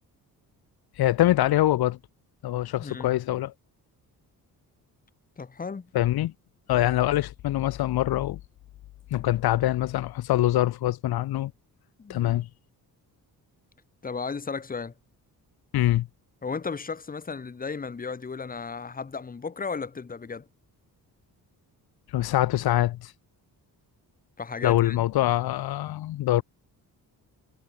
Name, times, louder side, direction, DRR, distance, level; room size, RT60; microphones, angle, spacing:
voice 1, 1.0-2.0 2.4-3.5 5.9-6.3 6.7-8.4 9.1-11.5 12.1-12.5 15.7-16.1 22.1-23.1 24.6-26.4, left 14 dB, 85° left, 1.2 m, -24 dB
voice 2, 2.8-3.2 5.4-5.9 12.0-12.4 14.0-14.9 16.4-20.5 24.4-25.0, left 5 dB, 25° left, 2.3 m, -35 dB
wide cardioid pair, 170°, 36 cm